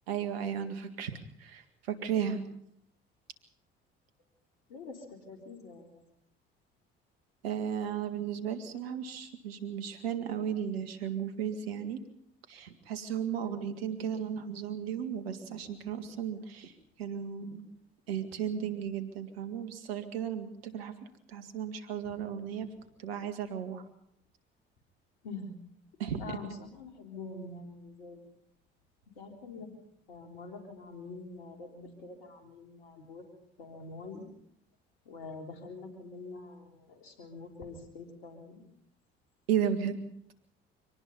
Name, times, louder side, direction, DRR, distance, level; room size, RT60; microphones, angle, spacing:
voice 1, 0.1-1.1 1.4-2.5 7.4-12.0 12.5-16.7 17.0-17.6 18.1-20.9 21.3-22.7 23.0-23.8 26.0-26.2 39.5-40.0, right 8 dB, 90° right, 8 dB, 2.1 m, -34 dB
voice 2, 4.7-6.0 13.4-13.8 22.0-22.1 25.2-25.5 26.2-28.2 29.2-29.7 30.1-33.2 33.6-34.3 35.1-38.7, left 3 dB, 85° left, 3 dB, 3.8 m, -45 dB
25.0 x 19.0 x 5.5 m, 0.73 s
hypercardioid pair, 60°, 30 cm